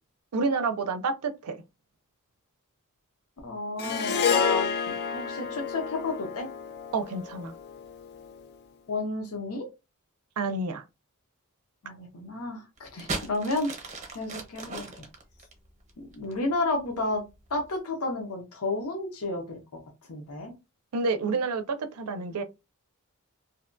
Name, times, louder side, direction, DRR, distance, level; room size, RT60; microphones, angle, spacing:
voice 1, 0.3-1.6 6.9-7.5 10.4-10.8 20.9-22.4, right 4 dB, 85° right, 0.4 m, -29 dB
voice 2, 3.4-6.5 8.9-9.7 11.8-14.9 16.0-17.2 17.5-19.6 20.1-20.5, left 2 dB, 75° left, 0.7 m, -31 dB
Harp, 3.8-8.2, left 6 dB, 50° left, 0.3 m, -30 dB
sound 1, 12.8-16.5 17.3-17.6, right 3 dB, 30° right, 0.7 m, -37 dB
2.7 x 2.2 x 2.4 m
head